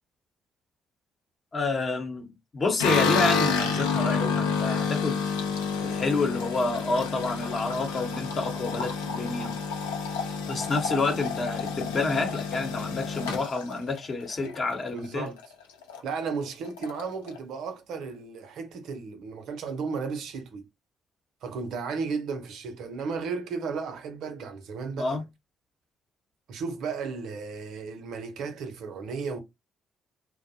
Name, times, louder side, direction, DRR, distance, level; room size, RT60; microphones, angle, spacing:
voice 1, 1.5-5.3 5.8-9.6 10.5-15.3 25.0-25.2, left 3 dB, 45° left, 0.8 m, -29 dB
sound 1, 2.8-15.1 15.4-16.0 16.3-16.4 16.7-17.4, left 5 dB, 85° left, 0.5 m, -29 dB
voice 2, 14.9-15.4 16.0-20.6 21.4-25.2 26.5-29.4, right 5 dB, 70° right, 0.6 m, -34 dB
2.5 x 2.0 x 2.6 m
hypercardioid pair, 45°, 0 cm